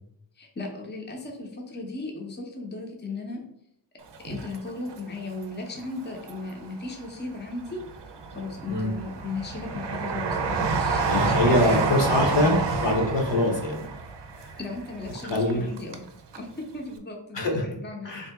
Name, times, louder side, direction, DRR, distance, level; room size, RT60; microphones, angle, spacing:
voice 1, 0.4-3.4 4.2-7.8 8.3-12.6 14.6-16.1 16.4-18.2, left 3 dB, 25° left, 1 dB, 0.6 m, -36 dB
Train, 4.1-5.4 5.8-6.8 7.3-16.1 16.3-16.4, right 4 dB, 65° right, 0.5 m, -29 dB
voice 2, 11.0-13.9 14.4-14.6 15.2-15.7 17.3-17.7 18.0-18.3, left 1 dB, 70° left, 1 dB, 0.9 m, -24 dB
3.6 x 2.8 x 3.4 m, 0.75 s
wide cardioid pair, 90°, 45 cm